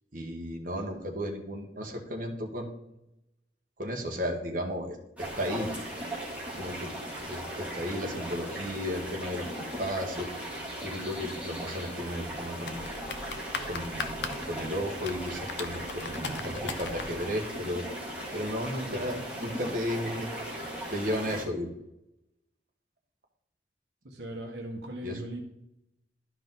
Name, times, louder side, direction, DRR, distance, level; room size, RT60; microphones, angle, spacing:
voice 1, 0.1-2.7 3.8-5.7 6.6-6.9 7.2-10.3 10.8-12.8 13.7-17.9 18.3-20.3 20.9-21.7 25.0-25.2, equal, 50° right, 1 dB, 1.6 m, -34 dB
sound 1, 5.2-21.4, right 1 dB, 10° right, 2.5 m, -38 dB
sound 2, 12.4-17.1, left 4 dB, 70° left, 0.8 m, -39 dB
voice 2, 24.0-25.4, right 1 dB, 70° right, 2 dB, 1.4 m, -39 dB
12.0 x 5.1 x 3.9 m, 0.83 s
head